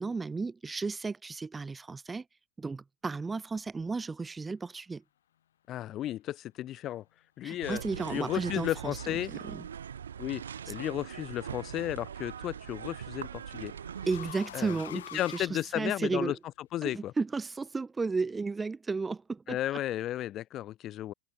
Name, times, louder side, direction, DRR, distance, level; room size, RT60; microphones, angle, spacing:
voice 1, 0.0-2.2 2.6-5.0 7.4-9.0 9.3-9.7 10.7-10.8 14.1-16.4 16.8-19.8, right 4 dB, 15° right, 1.2 m, -34 dB
voice 2, 5.7-7.0 7.4-7.8 8.1-9.3 10.2-13.7 14.5-16.3 16.7-17.1 19.5-21.1, left 13 dB, 40° left, 2.4 m, -34 dB
sound 1, 7.6-14.3, right 8 dB, 85° right, 3.7 m, -41 dB
sound 2, 10.6-10.9 12.3-16.3, left 11 dB, 80° left, 7.8 m, -47 dB
hypercardioid pair, 105°, 0 cm